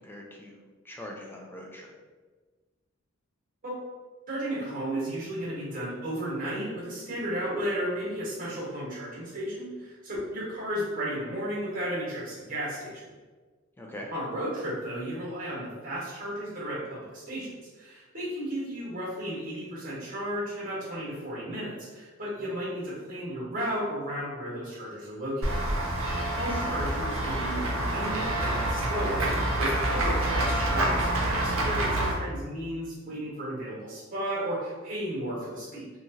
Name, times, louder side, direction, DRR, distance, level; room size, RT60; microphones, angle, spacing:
voice 1, 0.0-1.9 13.8-14.1 22.4-22.6 26.5-26.8, left 1 dB, 10° left, -1 dB, 0.3 m, -43 dB
voice 2, 4.3-13.1 14.1-25.5 26.3-35.9, equal, 40° right, -6 dB, 1.1 m, -34 dB
Run / Walk footsteps / Bell, 25.4-32.1, right 1 dB, 80° right, 0.6 m, -27 dB
3.1 x 2.3 x 2.6 m, 1.4 s
head